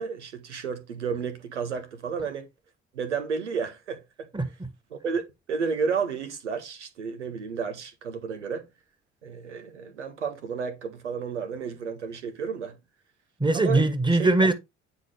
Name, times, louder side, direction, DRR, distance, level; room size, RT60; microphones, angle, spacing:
voice 1, 0.0-2.5 2.9-4.3 4.9-8.7 9.2-12.8 13.5-13.8 14.2-14.3, right 5 dB, 90° right, 0.8 m, -32 dB
voice 2, 4.3-4.7 13.4-14.5, right 2 dB, 15° right, 1.7 m, -22 dB
9.4 x 4.3 x 3.2 m
figure-of-eight pair, 45°, 34 cm